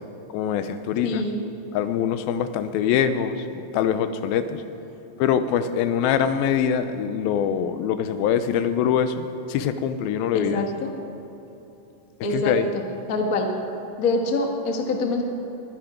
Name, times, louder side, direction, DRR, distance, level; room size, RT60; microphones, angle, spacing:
voice 1, 0.3-1.2 1.7-4.6 5.2-10.6 12.3-12.7, left 8 dB, 90° left, 11 dB, 2.5 m, -24 dB
voice 2, 1.0-1.4 10.3-10.9 12.2-12.8 13.1-13.5 14.0-15.2, left 2 dB, 65° left, 2 dB, 0.8 m, -25 dB
21.5 x 10.5 x 5.0 m, 3.0 s
omnidirectional pair, 4.2 m